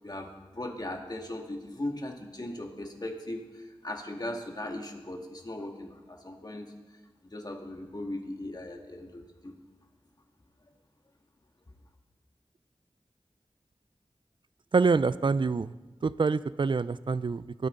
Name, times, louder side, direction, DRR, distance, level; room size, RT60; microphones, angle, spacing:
voice 1, 0.0-6.7 7.2-9.5, left 1 dB, 40° left, 2 dB, 1.8 m, -38 dB
voice 2, 14.7-15.7 16.0-17.7, right 4 dB, 50° right, 17 dB, 0.4 m, -26 dB
20.5 x 9.4 x 3.8 m, 1.3 s
wide cardioid pair, 65°, 10 cm